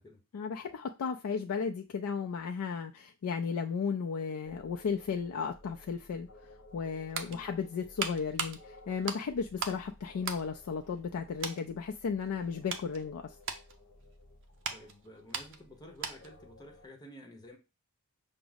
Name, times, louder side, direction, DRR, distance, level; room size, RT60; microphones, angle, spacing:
voice 1, 0.3-13.4, left 6 dB, 70° left, 0.3 m, -35 dB
sound 1, 4.4-16.9, left 2 dB, 50° left, 0.7 m, -57 dB
sound 2, 6.7-9.8 10.2-11.1 11.4-11.7 12.2-16.4 16.7-16.9, right 5 dB, 55° right, 0.6 m, -40 dB
voice 2, 14.7-17.6, equal, 20° left, 0.8 m, -52 dB
5.8 x 2.0 x 3.9 m
head